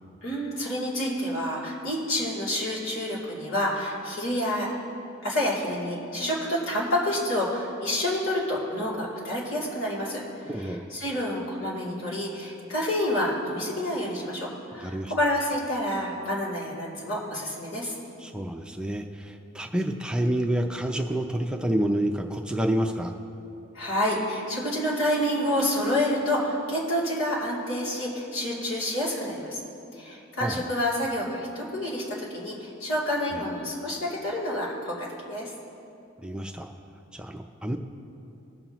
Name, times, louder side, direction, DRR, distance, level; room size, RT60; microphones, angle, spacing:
voice 1, 0.2-4.7 5.2-17.9 23.7-29.6 30.0-35.5, left 1 dB, 80° left, -6 dB, 2.9 m, -28 dB
voice 2, 10.5-10.8 14.8-15.1 18.2-23.1 30.4-30.7 33.3-33.4 36.2-36.7 37.1-37.8, right 1 dB, 5° right, 3 dB, 0.4 m, -28 dB
21.0 x 7.2 x 3.0 m, 2.8 s
head